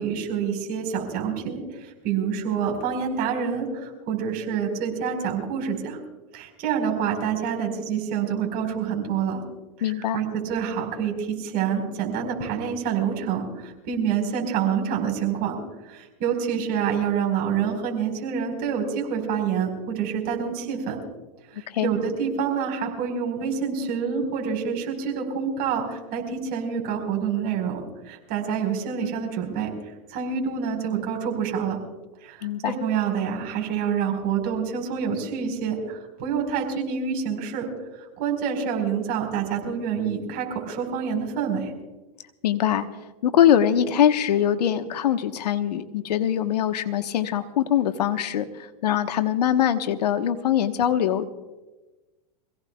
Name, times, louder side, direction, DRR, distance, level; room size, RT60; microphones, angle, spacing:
voice 1, 0.0-6.0 6.3-9.4 9.8-15.6 15.9-21.0 21.5-29.7 30.1-31.8 32.2-37.7 38.2-41.7, right 7 dB, 50° right, 2 dB, 4.6 m, -27 dB
voice 2, 9.8-10.2 21.7-21.9 32.4-32.8 42.4-42.9 43.2-51.3, left 10 dB, 80° left, 9 dB, 1.2 m, -22 dB
26.0 x 17.0 x 2.3 m, 1.2 s
hypercardioid pair, 115°, 21 cm